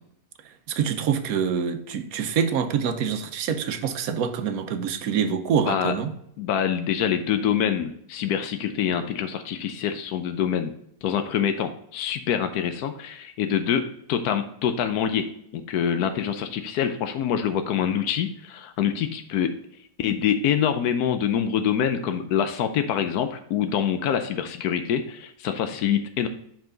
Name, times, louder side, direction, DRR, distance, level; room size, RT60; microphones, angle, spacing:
voice 1, 0.4-6.1, right 7 dB, 75° right, 1.1 m, -26 dB
voice 2, 6.4-10.7 11.0-15.3 15.5-19.5 20.0-26.3, left 8 dB, 90° left, 1.1 m, -25 dB
5.8 x 5.6 x 3.8 m
omnidirectional pair, 1.6 m